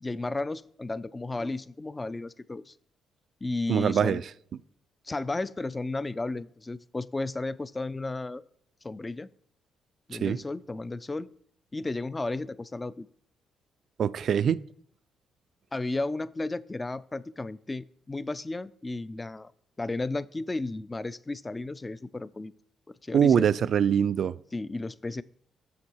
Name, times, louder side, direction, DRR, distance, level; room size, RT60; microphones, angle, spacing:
voice 1, 0.0-2.7 3.4-4.2 5.0-8.4 8.8-9.3 10.1-11.3 11.7-13.1 15.7-19.5 19.8-22.5 23.0-23.5 24.5-25.2, left 2 dB, 20° left, 18 dB, 0.3 m, -33 dB
voice 2, 3.7-4.2 10.2-10.4 14.0-14.6 23.1-24.4, right 8 dB, 60° right, 17 dB, 0.3 m, -23 dB
7.2 x 6.2 x 4.6 m, 0.64 s
cardioid pair, 90°, 0 cm